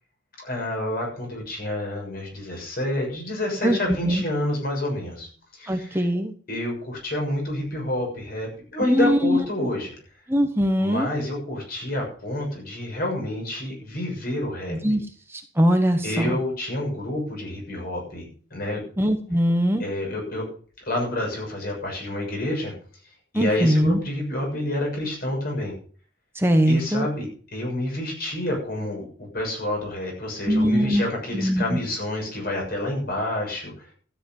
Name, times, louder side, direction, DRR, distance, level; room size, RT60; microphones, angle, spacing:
voice 1, 0.4-6.1 6.5-9.9 10.8-14.8 16.0-18.8 19.8-20.5 20.8-22.7 23.3-25.7 26.7-33.7, left 1 dB, 50° left, 0 dB, 6.6 m, -28 dB
voice 2, 3.6-4.2 5.7-6.3 8.9-9.7 10.3-11.1 14.7-15.0 15.3-16.4 19.0-19.8 23.3-24.0 26.3-27.1 30.5-31.0 31.3-31.8, equal, 10° right, 4 dB, 1.2 m, -21 dB
13.0 x 9.3 x 5.5 m, 0.43 s
head